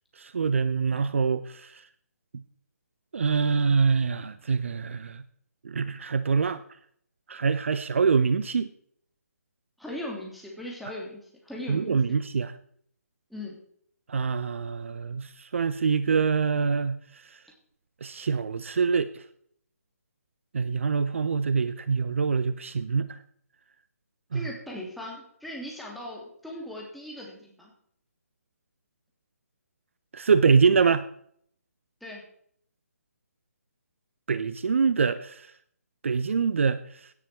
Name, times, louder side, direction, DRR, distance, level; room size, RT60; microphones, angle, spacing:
voice 1, 0.2-1.8 3.1-5.2 5.6-6.6 7.3-8.7 11.7-12.5 14.1-17.0 18.0-19.2 20.5-23.1 24.3-24.5 30.1-31.0 34.3-35.5 36.0-36.8, right 5 dB, 55° right, 15 dB, 0.8 m, -25 dB
voice 2, 9.8-12.2 13.3-13.6 24.3-27.7 32.0-32.2, left 1 dB, ahead, -3 dB, 3.1 m, -39 dB
17.0 x 10.5 x 4.5 m, 0.64 s
figure-of-eight pair, 145°, 8 cm